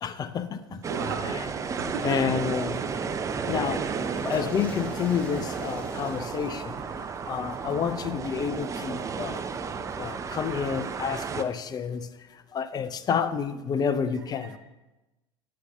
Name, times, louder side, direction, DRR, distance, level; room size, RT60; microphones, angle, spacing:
voice 1, 0.0-0.8 1.3-1.5 2.0-2.8 3.5-3.8 4.3-6.7 7.3-9.4 10.0-12.1 12.5-14.6, left 7 dB, 30° left, 12 dB, 0.5 m, -29 dB
sound 1, 0.8-11.4, right 5 dB, 25° right, 0.5 m, -33 dB
voice 2, 0.9-2.1 13.8-13.9 14.4-14.6, right 4 dB, 75° right, 3 dB, 1.1 m, -36 dB
sound 2, 4.0-10.7, left 2 dB, 10° left, 1.5 m, -46 dB
9.5 x 6.5 x 2.7 m, 1.0 s
hypercardioid pair, 75°, 13 cm